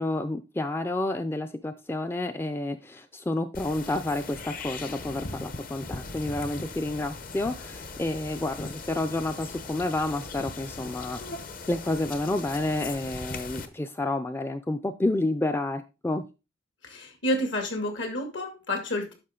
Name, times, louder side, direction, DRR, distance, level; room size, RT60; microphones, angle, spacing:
voice 1, 0.0-11.2 11.7-16.2, left 2 dB, 10° left, 9 dB, 0.4 m, -30 dB
sound 1, 3.5-13.7, left 3 dB, 45° left, 0.9 m, -39 dB
voice 2, 16.8-19.1, left 1 dB, 70° left, 4 dB, 2.4 m, -29 dB
9.8 x 6.2 x 3.8 m, 0.29 s
head